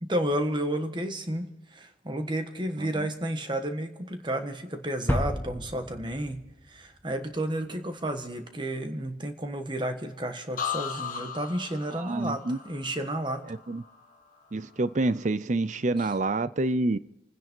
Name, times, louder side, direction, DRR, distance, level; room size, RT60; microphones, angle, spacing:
voice 1, 0.0-13.5, right 1 dB, 25° right, 7 dB, 1.4 m, -32 dB
voice 2, 2.8-3.1 11.9-12.6 13.5-13.8 14.5-17.0, right 2 dB, 40° right, 16 dB, 0.5 m, -28 dB
sound 1, 5.1-7.1, left 1 dB, 10° left, 0.5 m, -31 dB
sound 2, 10.6-14.4 14.7-15.2, left 7 dB, 45° left, 1.4 m, -38 dB
28.0 x 10.0 x 4.5 m, 0.95 s
head